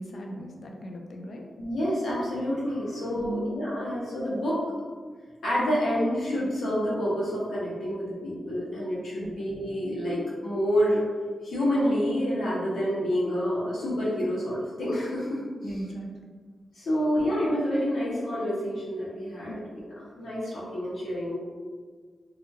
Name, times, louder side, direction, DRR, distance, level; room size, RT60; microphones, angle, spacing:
voice 1, 0.0-1.4 3.1-3.5 9.2-9.3 15.6-16.1 19.5-19.7, right 1 dB, 55° left, 1 dB, 0.4 m, -37 dB
voice 2, 1.6-4.6 5.4-11.0 11.4-15.4 15.7-15.8 16.7-21.4, equal, 90° left, -8 dB, 1.1 m, -28 dB
2.7 x 2.6 x 2.7 m, 1.5 s
wide cardioid pair, 160°, 0 cm